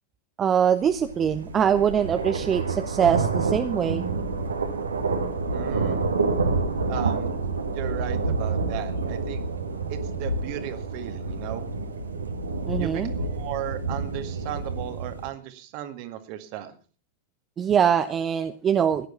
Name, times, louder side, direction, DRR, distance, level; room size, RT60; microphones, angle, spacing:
voice 1, 0.4-4.1 12.7-13.1 17.6-19.1, right 8 dB, 25° right, 9 dB, 0.8 m, -23 dB
sound 1, 0.8-15.3, right 3 dB, 75° right, 1.9 m, -28 dB
voice 2, 5.5-6.1 6.9-7.3 7.7-9.4 9.9-11.6 12.8-16.7, right 12 dB, 45° right, 9 dB, 1.9 m, -36 dB
16.5 x 10.5 x 5.7 m, 0.39 s
figure-of-eight pair, 90°, 0 cm